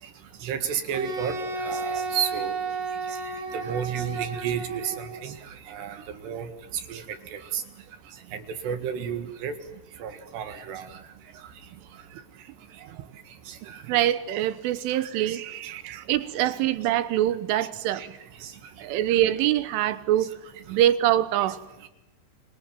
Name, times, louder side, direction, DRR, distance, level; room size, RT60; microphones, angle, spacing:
voice 1, 0.4-2.6 3.1-3.2 3.5-5.4 5.7-6.5 6.9-7.6 8.3-9.6 10.0-11.0 13.5-13.8 15.3-15.4 16.5-16.6 17.9-18.1 18.4-18.5 20.2-20.3 21.8-21.9, right 8 dB, 65° right, 3.7 m, -32 dB
Wind instrument woodwind instrument, 0.9-5.2, right 4 dB, 50° right, 4.6 m, -32 dB
voice 2, 13.6-18.0 18.8-20.3 20.7-21.6, right 12 dB, 90° right, 3.8 m, -24 dB
30.0 x 25.0 x 7.4 m
omnidirectional pair, 5.5 m